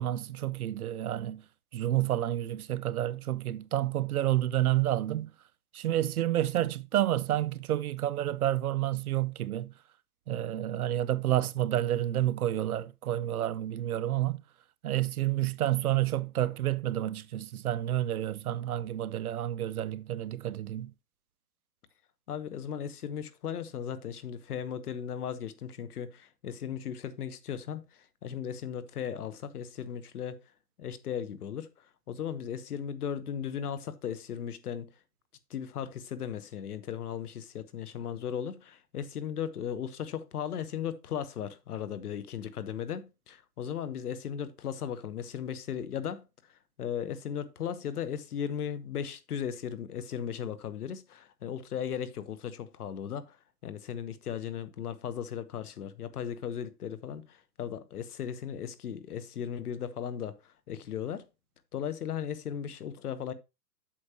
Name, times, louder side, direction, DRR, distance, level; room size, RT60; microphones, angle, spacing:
voice 1, 0.0-1.4 1.7-5.3 5.7-9.7 10.3-14.4 14.8-20.9, right 13 dB, 65° right, 0.6 m, -29 dB
voice 2, 22.3-30.4 30.8-31.7 32.1-34.9 35.5-46.3 46.8-53.4 53.6-61.3 61.7-63.3, left 8 dB, 65° left, 1.1 m, -37 dB
8.6 x 6.3 x 2.8 m
hypercardioid pair, 160°, 48 cm